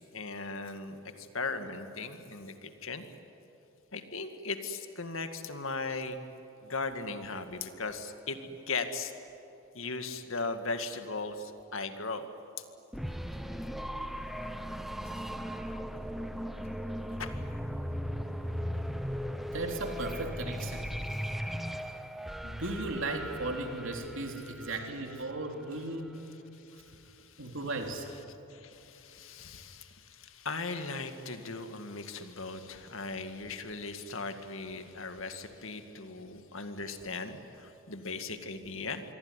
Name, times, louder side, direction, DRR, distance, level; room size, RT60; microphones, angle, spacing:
voice 1, 0.0-3.0 3.9-6.2 6.6-9.1 9.7-12.3 17.2-17.3 24.4-25.3 26.5-28.0 28.5-39.0, left 3 dB, 70° left, 8 dB, 1.9 m, -38 dB
sound 1, 12.9-25.6, equal, ahead, 0.9 m, -37 dB
voice 2, 19.5-21.0 22.4-26.1 27.4-28.1, right 2 dB, 65° right, 3 dB, 3.3 m, -36 dB
26.5 x 23.0 x 9.9 m, 3.0 s
head